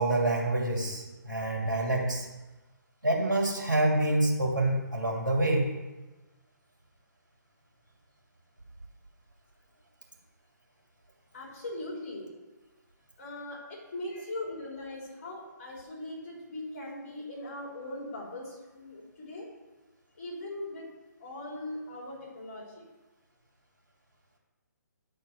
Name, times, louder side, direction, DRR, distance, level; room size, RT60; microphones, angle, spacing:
voice 1, 0.0-2.3 3.0-5.7, right 1 dB, 85° right, -1 dB, 2.8 m, -27 dB
voice 2, 11.3-12.3 13.2-19.5 20.2-20.9 21.2-22.9, left 1 dB, 40° left, -3 dB, 3.6 m, -40 dB
11.5 x 4.4 x 6.5 m, 1.2 s
figure-of-eight pair, 135°, 10 cm